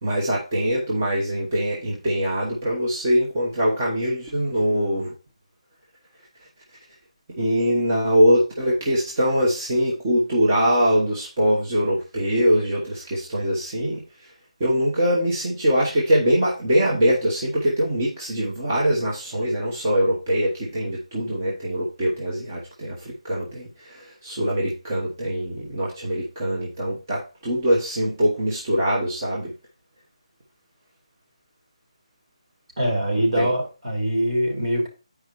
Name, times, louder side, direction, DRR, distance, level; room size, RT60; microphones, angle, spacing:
voice 1, 0.0-5.1 7.4-14.0 14.6-29.5 33.1-33.5, equal, 20° right, -5 dB, 1.1 m, -23 dB
voice 2, 32.8-34.9, equal, 55° right, 2 dB, 3.1 m, -23 dB
10.0 x 4.8 x 3.1 m, 0.33 s
hypercardioid pair, 175°, 4 cm